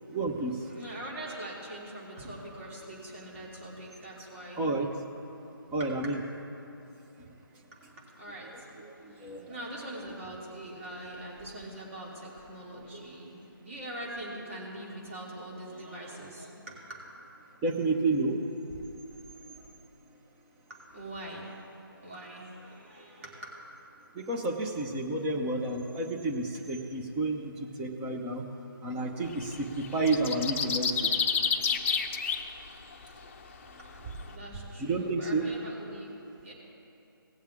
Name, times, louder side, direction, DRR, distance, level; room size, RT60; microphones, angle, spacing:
voice 1, 0.1-0.7 4.6-4.9 5.7-6.2 9.0-9.6 17.6-18.4 19.4-19.6 24.1-28.5 28.8-31.1 34.8-35.4, right 2 dB, 10° right, 1 dB, 0.7 m, -30 dB
voice 2, 0.6-4.7 5.2-5.4 5.8-5.9 7.7-17.0 20.7-23.5 33.8-36.5, right 1 dB, 35° right, -4 dB, 3.0 m, -43 dB
sound 1, 29.3-29.6 29.8-32.5 32.9-33.0, left 6 dB, 35° left, 0.7 m, -29 dB
18.5 x 7.3 x 3.7 m, 2.8 s
figure-of-eight pair, 155°, 12 cm